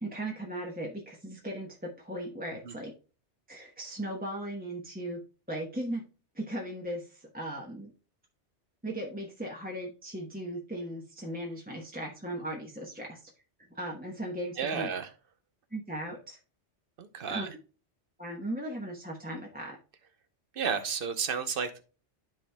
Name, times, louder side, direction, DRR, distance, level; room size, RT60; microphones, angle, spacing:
voice 1, 0.0-2.9 3.5-5.2 5.5-6.0 6.3-7.9 8.8-13.2 13.7-14.9 15.7-16.4 17.3-17.5 18.2-19.8, right 1 dB, 10° right, -2 dB, 0.9 m, -37 dB
voice 2, 14.6-15.1 17.0-17.5 20.5-21.8, right 6 dB, 55° right, 10 dB, 1.0 m, -32 dB
12.5 x 4.3 x 2.2 m, 0.36 s
omnidirectional pair, 1.2 m